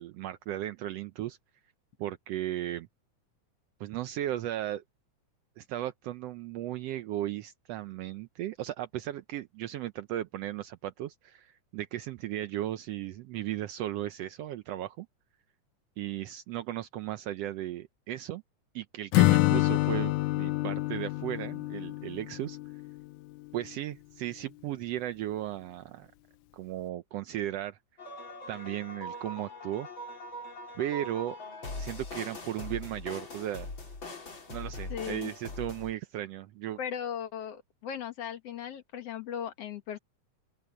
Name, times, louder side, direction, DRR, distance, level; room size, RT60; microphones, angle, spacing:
voice 1, 0.0-1.4 2.0-2.9 3.8-4.8 5.6-15.1 16.0-18.4 18.7-22.6 23.5-26.1 26.5-27.8 28.5-29.9 30.7-31.4 31.8-33.7 34.5-36.8, right 13 dB, 85° right, 1.4 m, -36 dB
Acoustic guitar / Strum, 19.1-23.0, left 19 dB, 80° left, 2.1 m, -27 dB
sound 1, 28.0-35.9, left 2 dB, 35° left, 4.6 m, -41 dB
voice 2, 34.9-35.3 36.8-40.0, left 8 dB, 55° left, 2.2 m, -37 dB
open air
omnidirectional pair, 3.7 m